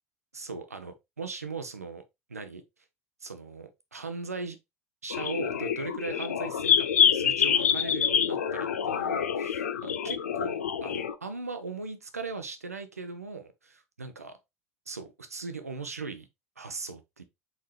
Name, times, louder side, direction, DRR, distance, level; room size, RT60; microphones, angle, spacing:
voice 1, 0.3-2.0 2.3-2.6 3.2-4.6 5.0-14.4 14.9-16.3 16.6-17.2, right 4 dB, 85° right, 0.6 m, -39 dB
sound 1, 5.1-11.1, left 8 dB, 75° left, 0.4 m, -26 dB
4.1 x 4.0 x 3.1 m
figure-of-eight pair, 65°, 8 cm